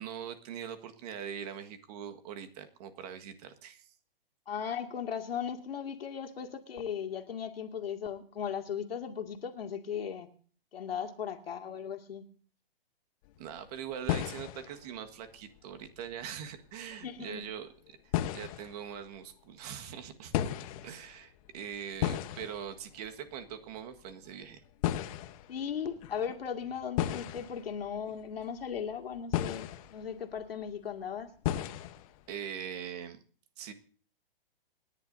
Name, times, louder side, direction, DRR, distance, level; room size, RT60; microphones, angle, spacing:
voice 1, 0.0-3.9 13.4-20.3 20.8-24.6 32.3-33.2 33.6-33.7, right 8 dB, 40° right, 7 dB, 1.6 m, -42 dB
voice 2, 4.5-10.3 10.7-12.3 17.0-17.5 25.5-31.3, left 7 dB, 80° left, 5 dB, 2.3 m, -37 dB
sound 1, 13.2-13.6 13.9-17.5 17.8-19.3 20.3-30.9 31.4-32.3, left 12 dB, 35° left, 1.1 m, -36 dB
27.5 x 10.5 x 2.7 m, 0.43 s
hypercardioid pair, 140°, 30 cm